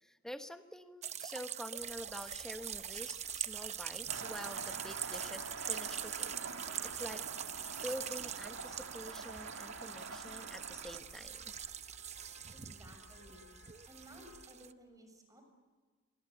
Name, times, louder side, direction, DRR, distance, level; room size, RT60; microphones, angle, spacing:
voice 1, 0.0-6.3 6.8-7.2 7.6-11.5, equal, 5° left, 7 dB, 1.1 m, -47 dB
sound 1, 1.0-14.7, right 9 dB, 35° right, 0.7 m, -43 dB
sound 2, 1.8-14.5, left 2 dB, 55° left, 2.0 m, -61 dB
sound 3, 4.1-11.0, right 4 dB, 85° right, 2.3 m, -46 dB
voice 2, 12.5-13.5 13.9-15.4, equal, 20° right, 5 dB, 6.6 m, -57 dB
29.0 x 24.0 x 8.0 m, 1.4 s
head